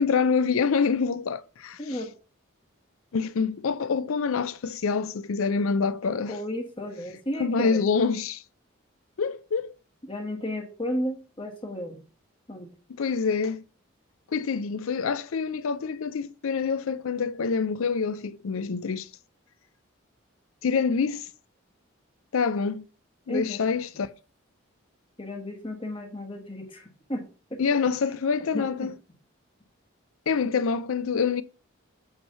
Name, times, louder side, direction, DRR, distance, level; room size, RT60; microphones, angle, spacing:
voice 1, 0.0-2.0 3.1-6.4 7.4-8.4 9.2-9.7 13.0-13.6 14.3-19.1 20.6-21.3 22.3-22.8 23.3-24.1 27.6-28.9 30.3-31.4, left 5 dB, 85° left, 0.5 m, -26 dB
voice 2, 1.8-2.1 6.3-7.8 10.1-12.0 12.5-12.7 23.3-23.6 25.2-27.2 27.5-27.6 28.5-28.9, left 1 dB, 25° left, 1.2 m, -33 dB
8.2 x 3.2 x 5.4 m
head